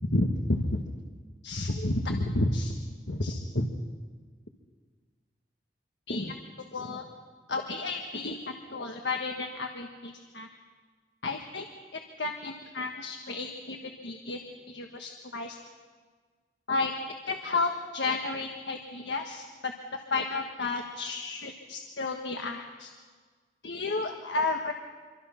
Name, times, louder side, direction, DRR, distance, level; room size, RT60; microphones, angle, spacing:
voice 1, 0.1-0.8 1.4-2.7 3.1-3.7 6.1-7.0 7.5-10.5 11.2-11.7 11.9-13.8 14.0-14.4 14.7-15.6 16.7-16.9 17.3-22.9 23.6-24.7, left 2 dB, 75° left, 3 dB, 1.5 m, -32 dB
26.5 x 24.0 x 5.7 m, 1.5 s
head